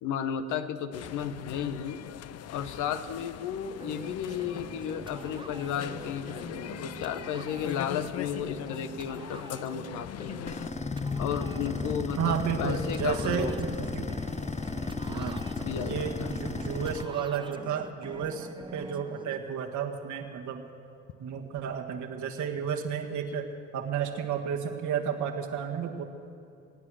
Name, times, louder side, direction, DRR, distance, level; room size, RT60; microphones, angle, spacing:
voice 1, 0.0-2.0 2.5-10.5 11.2-13.8 15.6-16.3, left 8 dB, 80° left, 10 dB, 1.0 m, -34 dB
sound 1, 0.9-10.7, left 11 dB, 55° left, 0.6 m, -41 dB
sound 2, 3.8-19.4, right 3 dB, 15° right, 0.9 m, -44 dB
sound 3, 10.5-17.0, left 4 dB, 20° left, 0.9 m, -34 dB
voice 2, 12.2-14.1 15.1-15.4 15.8-20.6 21.2-23.5 23.7-26.0, right 8 dB, 70° right, 3 dB, 1.7 m, -32 dB
24.0 x 9.2 x 6.3 m, 2.5 s
hypercardioid pair, 55°, 30 cm